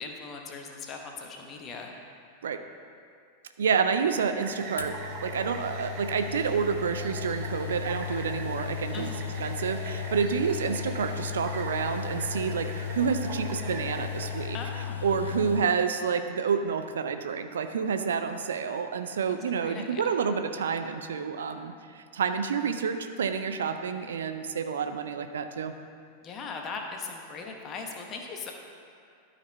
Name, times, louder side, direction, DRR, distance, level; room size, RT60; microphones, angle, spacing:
voice 1, 0.0-1.9 8.9-9.2 14.5-15.4 19.3-20.1 23.5-23.8 26.2-28.5, left 4 dB, 30° left, 2 dB, 1.0 m, -40 dB
voice 2, 3.6-9.1 9.4-14.6 15.0-25.7, right 6 dB, 65° right, 8 dB, 0.4 m, -29 dB
sound 1, 4.4-14.5, right 4 dB, 40° right, 1.0 m, -41 dB
sound 2, 4.8-15.7, left 9 dB, 70° left, 0.4 m, -36 dB
12.5 x 4.2 x 4.1 m, 2.4 s
figure-of-eight pair, 90°, 0 cm